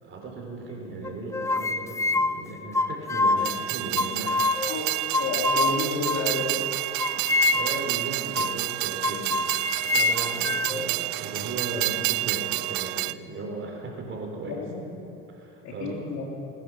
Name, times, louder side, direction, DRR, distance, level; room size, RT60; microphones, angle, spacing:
voice 1, 0.0-4.4 7.1-14.6 15.3-16.0, right 2 dB, 40° right, 0 dB, 4.0 m, -37 dB
sound 1, 1.0-3.5 4.0-4.8 5.1-6.5 7.0-7.9 8.3-8.6 9.0-10.9, left 3 dB, 10° left, 0.4 m, -26 dB
Train, 3.4-13.1, right 19 dB, 60° right, 0.5 m, -29 dB
voice 2, 5.2-6.5 14.5-14.9 15.6-16.2, left 3 dB, 60° left, -1 dB, 3.3 m, -30 dB
19.5 x 11.0 x 6.3 m, 2.8 s
supercardioid pair, 95°, 32 cm